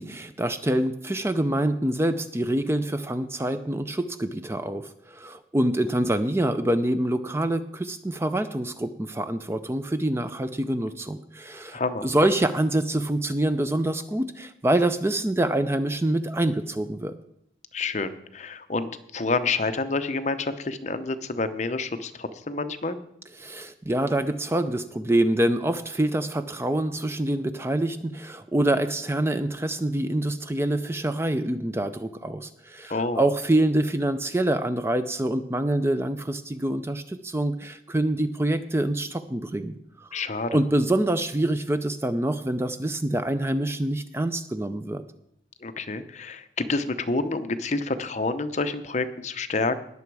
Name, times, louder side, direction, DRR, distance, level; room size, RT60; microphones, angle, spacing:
voice 1, 0.0-17.2 23.4-40.1 40.5-45.0, right 1 dB, 15° right, 11 dB, 0.5 m, -26 dB
voice 2, 11.7-12.1 17.7-23.0 32.9-33.3 40.1-40.6 45.6-49.8, left 3 dB, 40° left, 10 dB, 0.7 m, -28 dB
19.0 x 7.0 x 4.7 m, 0.76 s
head